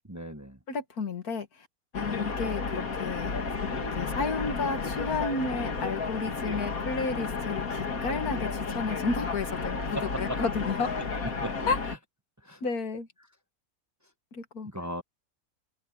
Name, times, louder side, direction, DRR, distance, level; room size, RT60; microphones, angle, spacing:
voice 1, 0.1-0.6 9.9-10.4 11.0-11.1 11.4-11.6 12.4-12.6 14.6-15.0, equal, 15° right, 1.0 m, -36 dB
voice 2, 0.7-1.5 1.9-3.3 3.8-10.9 11.7-11.8 12.6-13.1 14.3-14.7, left 4 dB, 90° left, 2.2 m, -32 dB
sound 1, 1.9-12.0, left 4 dB, 70° left, 2.6 m, -32 dB
omnidirectional pair, 1.5 m